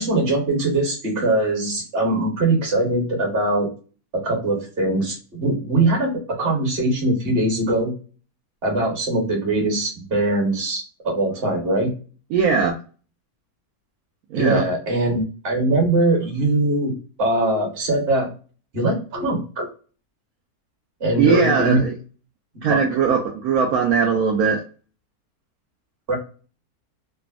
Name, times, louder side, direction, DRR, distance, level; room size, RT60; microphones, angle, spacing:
voice 1, 0.0-3.7 4.1-7.9 8.6-11.9 14.3-18.3 18.7-19.7 21.0-21.8 22.7-22.8 26.1-26.2, right 2 dB, 40° right, 0 dB, 1.3 m, -21 dB
voice 2, 12.3-12.7 14.3-14.6 21.2-21.9 22.6-24.6, right 6 dB, 75° right, 0 dB, 1.0 m, -19 dB
3.3 x 2.0 x 2.3 m, 0.37 s
omnidirectional pair, 1.7 m